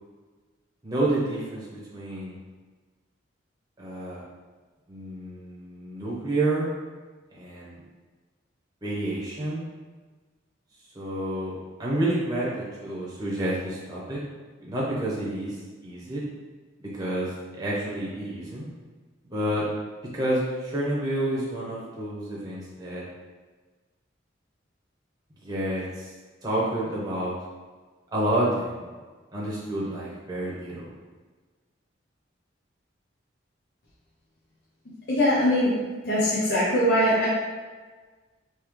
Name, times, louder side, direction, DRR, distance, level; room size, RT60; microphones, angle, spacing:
voice 1, 0.8-2.3 3.8-4.2 4.9-6.7 7.3-7.8 8.8-9.6 10.9-14.2 14.6-15.6 15.8-16.2 16.8-18.7 19.3-19.7 20.1-23.0 25.4-26.1 26.4-27.3 28.1-28.9 29.3-30.9, right 1 dB, 20° right, -6 dB, 0.9 m, -29 dB
voice 2, 35.1-35.7 36.1-37.3, equal, 60° left, -8 dB, 0.8 m, -21 dB
3.6 x 2.9 x 3.1 m, 1.4 s
head